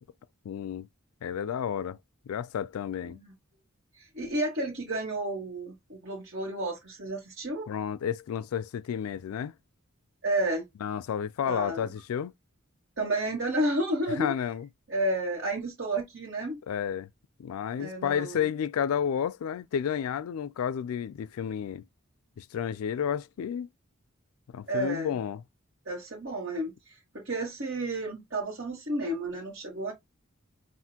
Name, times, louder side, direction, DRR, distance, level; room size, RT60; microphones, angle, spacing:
voice 1, 0.5-0.9 1.2-2.0 2.3-3.2 7.7-9.5 10.8-12.3 14.2-14.7 16.7-17.1 17.4-21.8 22.4-23.7 24.5-25.4, left 8 dB, 85° left, 0.3 m, -31 dB
voice 2, 4.0-7.7 10.2-10.7 11.5-11.9 13.0-14.3 14.9-16.6 17.8-18.4 24.7-25.1 25.8-29.9, right 1 dB, 55° right, 1.5 m, -31 dB
5.8 x 2.5 x 2.8 m
head